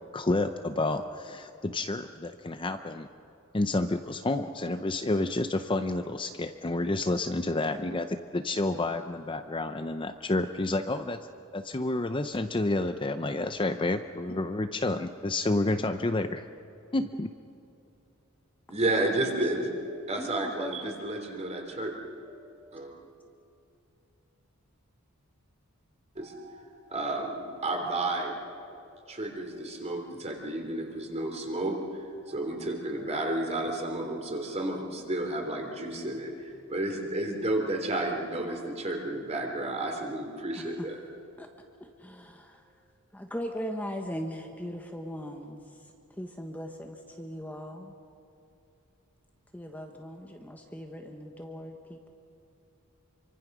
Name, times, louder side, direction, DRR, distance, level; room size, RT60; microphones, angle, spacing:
voice 1, 0.1-3.1 3.5-11.2 11.5-16.5 16.9-17.3, left 2 dB, 25° left, 8 dB, 0.6 m, -29 dB
voice 2, 18.7-21.9 22.2-22.9 26.1-36.3 36.7-41.0, right 1 dB, 30° right, 2 dB, 3.4 m, -32 dB
voice 3, 20.2-20.9 40.6-40.9 41.4-41.5 41.8-42.6 43.1-45.6 46.2-47.9 49.5-52.1, equal, 10° left, 3 dB, 1.2 m, -39 dB
27.0 x 24.5 x 6.2 m, 2.7 s
head